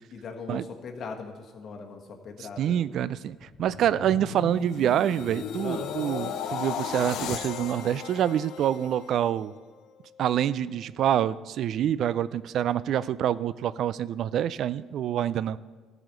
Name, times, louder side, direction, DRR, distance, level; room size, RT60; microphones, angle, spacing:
voice 1, 0.1-2.8 5.6-5.9, left 5 dB, 55° left, 3 dB, 1.5 m, -39 dB
voice 2, 2.6-9.5 10.2-15.6, right 10 dB, 65° right, 18 dB, 0.3 m, -26 dB
sound 1, 3.3-9.6 10.0-10.3, left 8 dB, 70° left, 0.7 m, -36 dB
13.5 x 5.0 x 6.6 m, 1.4 s
supercardioid pair, 75°, 0 cm